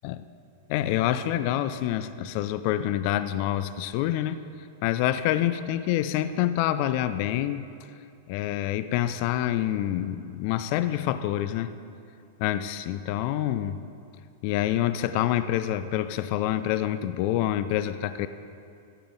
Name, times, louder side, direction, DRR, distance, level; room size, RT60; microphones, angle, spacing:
voice 1, 0.7-4.4 4.8-7.7 8.3-11.7 12.4-13.8 14.4-18.3, left 12 dB, 50° left, 12 dB, 0.4 m, -27 dB
14.0 x 7.9 x 3.9 m, 2.5 s
hypercardioid pair, 100°, 0 cm